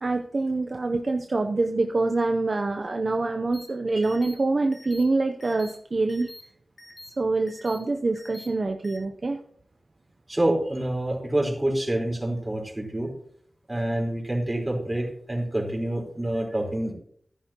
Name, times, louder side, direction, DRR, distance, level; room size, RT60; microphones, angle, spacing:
voice 1, 0.0-6.3 7.2-9.4, right 3 dB, 50° right, 5 dB, 0.7 m, -25 dB
sound 1, 3.5-3.7 4.0-4.4 4.7-5.0 5.4-5.7 6.1-6.4 6.8-7.1 7.5-7.8 8.2-8.5 8.8-9.0, left 1 dB, 45° left, 2.1 m, -45 dB
voice 2, 10.3-13.1 13.7-16.9, right 1 dB, 20° right, -1 dB, 4.3 m, -27 dB
13.5 x 10.5 x 3.0 m, 0.62 s
wide cardioid pair, 65°, 0 cm